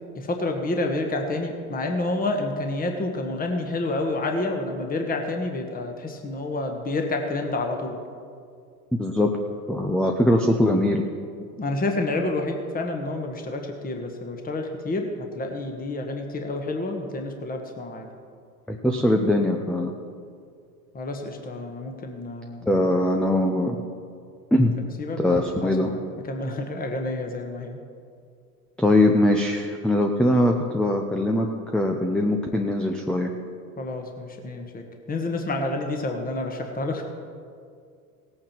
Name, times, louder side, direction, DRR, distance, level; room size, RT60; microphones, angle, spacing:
voice 1, 0.1-8.0 11.6-15.1 15.3-18.1 20.9-22.7 25.0-26.0 26.3-27.8 33.8-37.0, left 2 dB, 20° left, 4 dB, 1.4 m, -29 dB
voice 2, 9.0-9.3 9.7-11.0 18.7-19.9 22.6-23.8 24.5-24.8 25.2-25.9 28.8-31.5 31.7-33.3, left 1 dB, ahead, 2 dB, 0.7 m, -21 dB
17.5 x 8.7 x 4.5 m, 2.3 s
hypercardioid pair, 100°, 47 cm